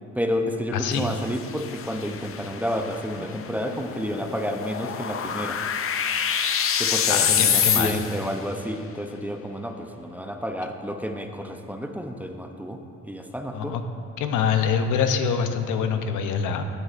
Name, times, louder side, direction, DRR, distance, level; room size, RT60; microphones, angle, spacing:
voice 1, 0.1-5.6 6.8-13.8, equal, 5° right, 4 dB, 0.6 m, -30 dB
voice 2, 0.7-1.1 7.1-8.0 13.5-13.8 14.2-16.6, left 6 dB, 85° left, 7 dB, 0.7 m, -25 dB
sound 1, 0.9-8.3, left 7 dB, 45° left, 0.6 m, -27 dB
15.0 x 7.9 x 2.5 m, 2.6 s
cardioid pair, 90°, 30 cm